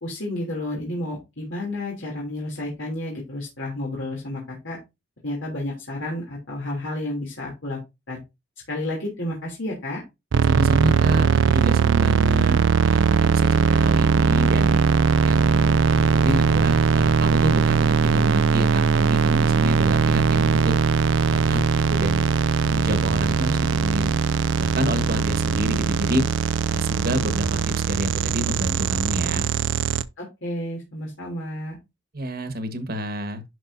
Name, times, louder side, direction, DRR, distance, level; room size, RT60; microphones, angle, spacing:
voice 1, 0.0-4.8 5.2-7.8 8.1-8.2 8.7-10.0 30.2-31.8, left 1 dB, 90° left, 3.0 m, -31 dB
sound 1, 10.3-30.0, right 5 dB, 75° right, 0.5 m, -20 dB
voice 2, 10.4-14.8 15.2-20.7 21.3-21.6 21.9-22.3 22.6-24.2 24.6-26.2 26.7-29.5 32.1-33.4, equal, 55° right, 1.4 m, -28 dB
11.0 x 5.5 x 2.7 m
head